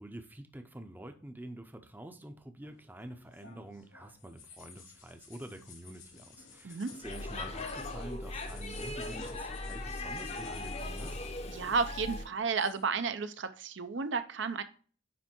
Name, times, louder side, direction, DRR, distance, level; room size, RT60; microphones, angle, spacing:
voice 1, 0.0-11.2, right 1 dB, 10° right, 7 dB, 0.6 m, -47 dB
sound 1, 2.6-11.7 12.0-12.8, left 4 dB, 80° left, 2.5 m, -54 dB
Speech / Shout / Subway metro underground, 7.0-12.3, left 2 dB, 30° left, 0.8 m, -39 dB
voice 2, 11.5-14.6, right 5 dB, 65° right, 10 dB, 0.6 m, -32 dB
9.6 x 3.3 x 4.4 m, 0.41 s
head